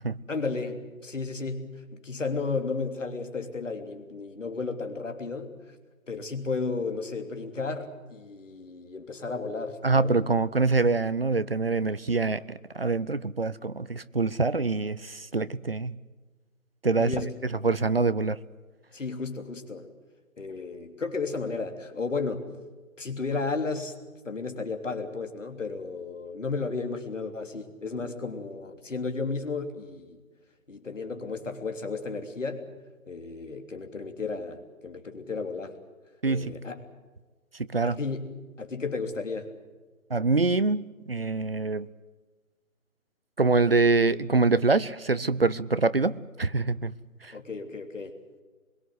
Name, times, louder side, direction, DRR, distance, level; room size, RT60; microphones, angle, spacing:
voice 1, 0.3-5.5 6.1-10.2 17.0-17.3 18.9-19.9 20.4-22.5 23.0-23.9 24.2-30.2 30.7-32.7 33.1-35.7 36.2-36.8 37.8-39.5 47.3-48.1, left 4 dB, 60° left, 6 dB, 3.3 m, -33 dB
voice 2, 9.8-16.0 16.8-18.4 36.2-36.6 37.5-38.0 40.1-41.9 43.4-46.9 47.2-47.3, right 3 dB, 45° right, 16 dB, 0.7 m, -25 dB
24.5 x 22.5 x 8.0 m, 1.3 s
hypercardioid pair, 180°, 42 cm